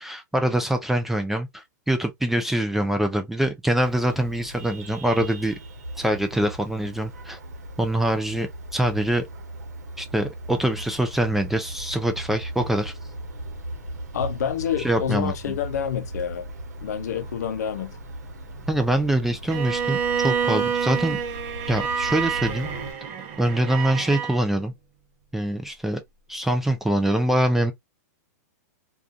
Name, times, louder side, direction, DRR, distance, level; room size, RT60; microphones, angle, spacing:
voice 1, 0.0-5.6 6.0-7.4 7.8-9.3 10.0-12.9 14.8-15.6 18.7-21.2 21.7-22.7 23.4-24.7 25.3-26.0 26.3-27.7, right 1 dB, 5° right, 0.3 m, -24 dB
Vehicle horn car horn honking, 3.8-22.9, right 1 dB, 80° right, 0.9 m, -38 dB
voice 2, 14.1-16.5 16.8-17.9, left 9 dB, 75° left, 0.5 m, -28 dB
Bowed string instrument, 19.5-24.4, right 7 dB, 35° right, 0.6 m, -27 dB
2.4 x 2.3 x 2.4 m
hypercardioid pair, 135°, 9 cm